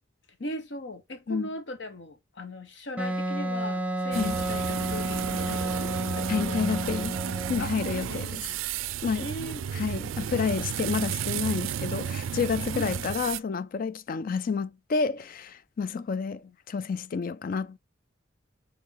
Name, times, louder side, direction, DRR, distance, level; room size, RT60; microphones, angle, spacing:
voice 1, 0.4-7.2 7.6-7.8 8.1-8.6 9.2-9.7 12.7-13.0 15.9-16.5, left 1 dB, 65° left, 1.1 m, -39 dB
Wind instrument woodwind instrument, 3.0-7.6, right 1 dB, 5° right, 0.6 m, -31 dB
voice 2, 4.1-4.4 6.3-7.2 7.5-8.5 9.0-9.3 9.7-16.4 16.7-17.8, left 5 dB, 45° left, 0.4 m, -29 dB
pool concrete spraying, 4.1-13.4, right 8 dB, 85° right, 0.3 m, -33 dB
6.1 x 2.7 x 5.6 m
head